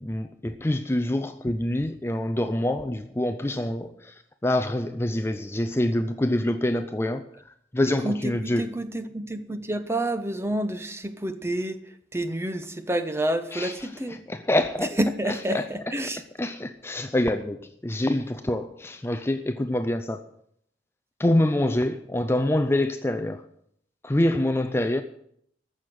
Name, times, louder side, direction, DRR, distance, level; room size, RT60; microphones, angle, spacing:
voice 1, 0.0-8.7 13.5-15.0 15.2-15.7 16.4-20.3 21.2-23.4 24.0-25.0, left 1 dB, 15° left, 0.5 m, -26 dB
voice 2, 8.0-11.8 12.1-14.2 15.0-16.2, right 1 dB, 15° right, 0.9 m, -29 dB
15.0 x 6.5 x 9.3 m
head